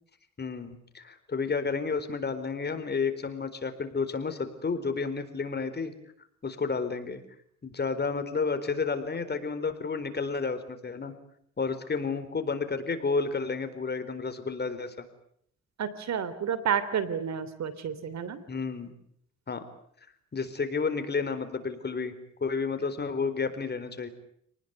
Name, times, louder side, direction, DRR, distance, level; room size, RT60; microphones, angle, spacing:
voice 1, 0.4-5.9 6.4-7.2 7.6-11.1 11.6-14.9 18.5-18.9 19.5-19.6 20.3-22.1 22.4-24.1, left 4 dB, 35° left, 9 dB, 4.3 m, -31 dB
voice 2, 15.8-18.4, right 7 dB, 65° right, 15 dB, 3.2 m, -30 dB
29.0 x 20.0 x 9.5 m, 0.69 s
cardioid pair, 90°, 30 cm